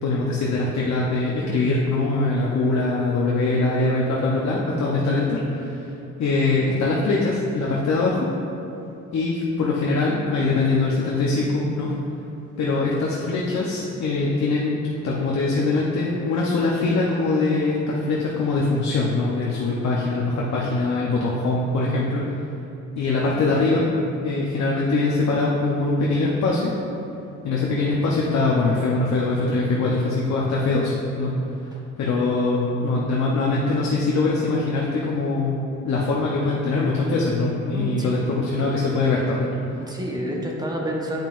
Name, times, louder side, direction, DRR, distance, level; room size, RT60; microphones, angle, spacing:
voice 1, 0.0-5.9 6.2-8.3 9.1-11.9 12.6-14.8 15.0-22.4 22.9-23.8 24.2-26.7 27.4-31.3 32.0-39.5, left 3 dB, 65° left, -4 dB, 0.8 m, -22 dB
voice 2, 37.7-38.2 39.8-41.2, equal, 15° right, -2 dB, 0.9 m, -29 dB
8.9 x 5.6 x 2.5 m, 2.7 s
cardioid pair, 120°, 29 cm